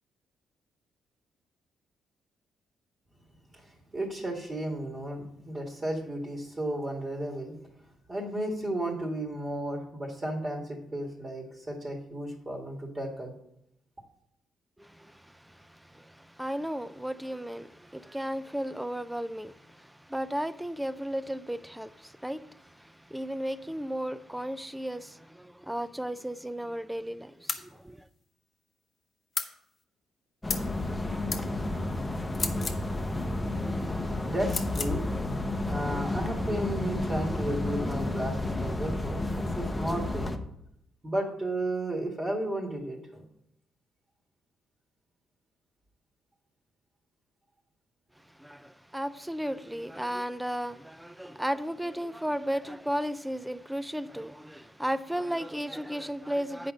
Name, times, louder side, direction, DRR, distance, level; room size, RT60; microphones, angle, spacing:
voice 1, 3.5-7.5 8.1-13.3 33.9-34.0 34.2-35.1 35.6-40.3 41.0-43.2, right 1 dB, 30° right, 1.9 m, -33 dB
voice 2, 14.8-28.1 48.3-56.7, equal, 5° right, 0.5 m, -35 dB
sound 1, 27.5-27.7 29.3-29.5 30.5-30.7 31.3-31.4 32.3-32.8 34.5-34.9, left 4 dB, 40° left, 1.1 m, -32 dB
sound 2, 30.4-40.4, left 2 dB, 10° left, 0.9 m, -31 dB
8.4 x 5.2 x 6.5 m
cardioid pair, 90°, 0 cm